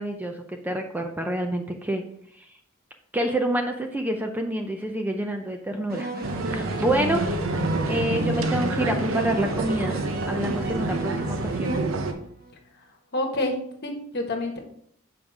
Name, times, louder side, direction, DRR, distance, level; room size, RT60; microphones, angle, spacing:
voice 1, 0.0-2.0 2.3-2.6 3.1-6.1 6.4-7.2 7.9-10.0 10.3-11.8, right 1 dB, 10° right, 4 dB, 0.5 m, -27 dB
sound 1, 5.9-12.5, right 1 dB, 50° right, 1.0 m, -34 dB
sound 2, 6.2-12.1, right 2 dB, 70° right, 0.7 m, -28 dB
voice 2, 13.1-14.6, left 1 dB, 50° left, 2 dB, 1.3 m, -28 dB
7.0 x 5.0 x 3.5 m, 0.69 s
head